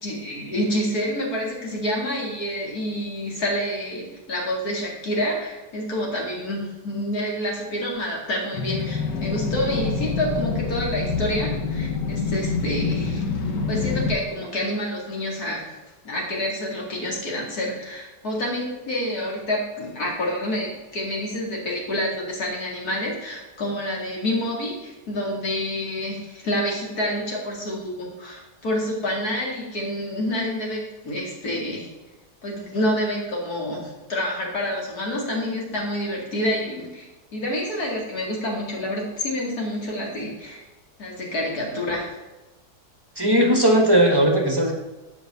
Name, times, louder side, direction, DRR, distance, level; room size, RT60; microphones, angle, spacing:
voice 1, 0.0-13.2 13.7-15.7 16.0-31.9 32.4-40.6 41.0-42.1, left 1 dB, 60° left, -2 dB, 2.8 m, -28 dB
sound 1, 8.5-14.1, left 4 dB, 85° left, 1.7 m, -26 dB
voice 2, 43.1-44.7, right 1 dB, 15° right, 1 dB, 1.4 m, -18 dB
7.9 x 5.6 x 6.8 m, 1.1 s
omnidirectional pair, 1.8 m